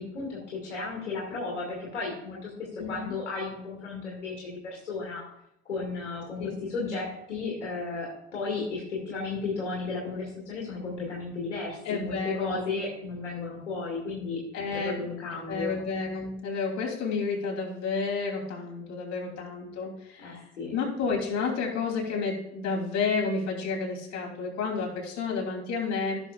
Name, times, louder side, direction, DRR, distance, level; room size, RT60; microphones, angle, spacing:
voice 1, 0.0-5.2 5.6-14.4 14.7-15.8 20.2-20.7, left 3 dB, 85° left, -4 dB, 2.2 m, -34 dB
voice 2, 2.8-3.2 6.4-6.6 11.8-12.6 14.5-15.0 15.5-20.4 20.7-26.2, left 4 dB, 50° left, -1 dB, 3.0 m, -31 dB
15.0 x 6.6 x 2.4 m, 0.79 s
hypercardioid pair, 55°, 34 cm